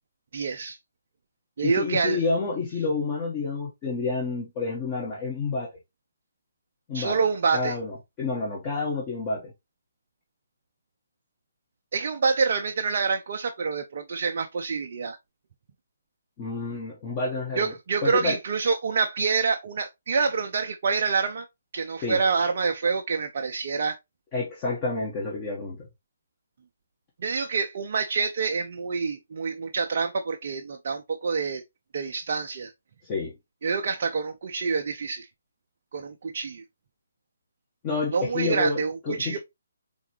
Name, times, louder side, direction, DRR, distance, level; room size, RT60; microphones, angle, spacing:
voice 1, 0.3-0.8 1.6-2.2 6.9-7.8 11.9-15.2 17.6-21.5 21.7-24.0 27.2-31.6 31.9-32.7 33.6-35.3 35.9-36.6 38.1-39.4, right 5 dB, 50° right, 0.5 m, -27 dB
voice 2, 1.6-5.7 6.9-7.2 7.5-9.5 16.4-17.7 18.0-18.4 22.0-22.2 24.3-25.9 33.0-33.3 37.8-39.4, left 3 dB, 25° left, 1.4 m, -29 dB
4.6 x 3.6 x 3.1 m
figure-of-eight pair, 140°, 0 cm